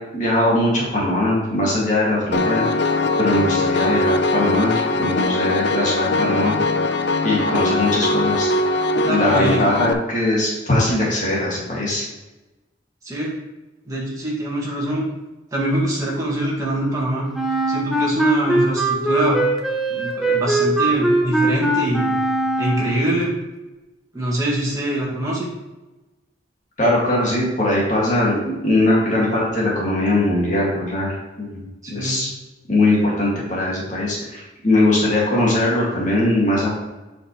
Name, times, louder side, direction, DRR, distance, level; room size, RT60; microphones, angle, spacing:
voice 1, 0.1-2.7 3.2-6.6 7.2-8.5 9.1-12.0 26.8-32.3 32.7-36.7, left 1 dB, 40° left, -5 dB, 2.2 m, -20 dB
Piano, 2.3-9.9, left 2 dB, 60° left, 0.5 m, -21 dB
voice 2, 9.0-9.6 13.0-13.3 13.9-15.1 15.5-17.3 17.7-19.4 19.9-22.1 22.6-23.3 24.1-25.5 31.8-32.2, right 1 dB, 15° right, -5 dB, 2.1 m, -24 dB
Wind instrument woodwind instrument, 17.3-23.1, right 2 dB, ahead, 0.6 m, -20 dB
7.8 x 5.8 x 3.2 m, 1.1 s
head